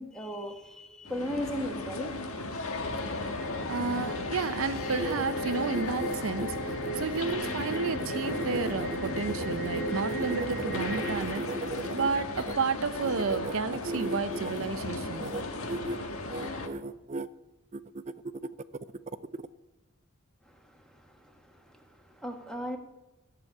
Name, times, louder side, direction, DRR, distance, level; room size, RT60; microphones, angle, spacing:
voice 1, 0.0-2.1 20.4-22.8, equal, 5° left, 3 dB, 1.4 m, -38 dB
sound 1, 1.0-16.7, left 2 dB, 80° left, 1.5 m, -36 dB
sound 2, 2.7-11.2, equal, 60° left, 1.9 m, -37 dB
voice 2, 3.7-15.3, right 4 dB, 70° right, 12 dB, 0.6 m, -32 dB
sound 3, 4.7-12.5 13.0-14.7 15.1-15.4 15.7-16.0 16.3-17.3 17.7-19.5, right 3 dB, 30° right, 0.4 m, -37 dB
15.0 x 6.9 x 8.3 m, 1.0 s
head